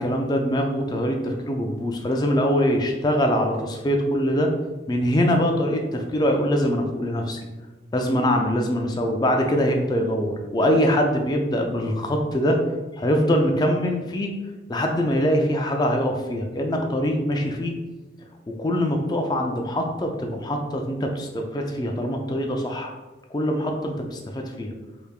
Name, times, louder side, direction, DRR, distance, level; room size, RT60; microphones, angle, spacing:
voice 1, 0.0-4.5 4.9-7.4 7.9-12.6 12.9-14.3 14.7-17.7 18.6-22.9 23.3-24.7, equal, 20° left, 2 dB, 0.4 m, -23 dB
3.4 x 3.3 x 2.3 m, 1.2 s
head